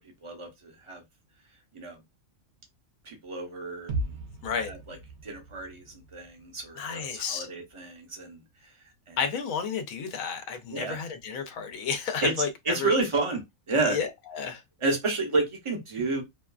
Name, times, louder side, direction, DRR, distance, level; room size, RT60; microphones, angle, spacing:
voice 1, 0.2-1.0 1.7-2.0 3.1-4.1 4.7-5.0 5.2-8.4 9.1-9.2 10.7-11.0 12.2-12.3 12.7-14.0 14.8-16.2, right 3 dB, 35° right, 0.5 m, -30 dB
sound 1, 3.9-7.8 8.1-8.2, right 2 dB, 65° right, 0.8 m, -38 dB
voice 2, 6.7-7.5 9.2-12.9 13.9-14.6, left 6 dB, 90° left, 1.1 m, -31 dB
2.7 x 2.3 x 2.3 m
omnidirectional pair, 1.4 m